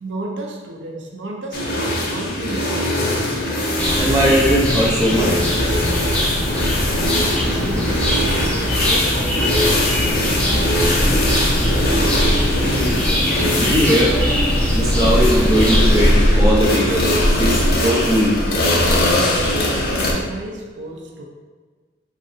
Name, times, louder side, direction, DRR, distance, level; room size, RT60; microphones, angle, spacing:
voice 1, 0.0-3.0 7.1-9.9 19.1-21.2, right 2 dB, 80° right, 1 dB, 0.5 m, -32 dB
sound 1, 1.5-20.1, left 1 dB, 55° left, 0.5 m, -20 dB
sound 2, 3.8-16.0, equal, 5° left, 0.4 m, -22 dB
voice 2, 4.0-5.4 12.6-13.0 13.5-14.2 14.7-18.4, equal, 20° right, -6 dB, 0.7 m, -19 dB
3.7 x 3.1 x 2.6 m, 1.4 s
head